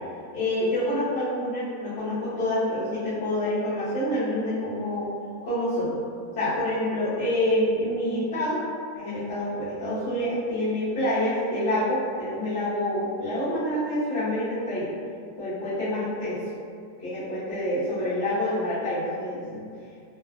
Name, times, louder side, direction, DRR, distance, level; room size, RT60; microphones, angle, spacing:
voice 1, 0.3-5.1 5.4-5.9 6.3-8.6 8.9-14.9 15.4-16.4 17.0-19.6, left 1 dB, 50° left, -17 dB, 1.0 m, -27 dB
2.8 x 2.2 x 2.4 m, 2.3 s
omnidirectional pair, 1.6 m